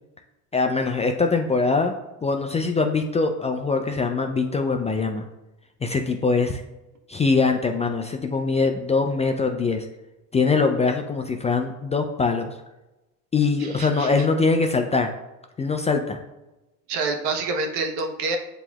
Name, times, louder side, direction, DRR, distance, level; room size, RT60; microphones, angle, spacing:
voice 1, 0.5-1.9 2.2-5.2 5.8-6.6 7.1-9.8 10.3-12.5 13.3-15.1 15.6-16.2, left 4 dB, 15° left, 4 dB, 0.3 m, -22 dB
voice 2, 13.6-14.3 16.9-18.4, right 3 dB, 70° right, 4 dB, 0.9 m, -27 dB
7.5 x 2.9 x 2.3 m, 0.99 s
hypercardioid pair, 80°, 42 cm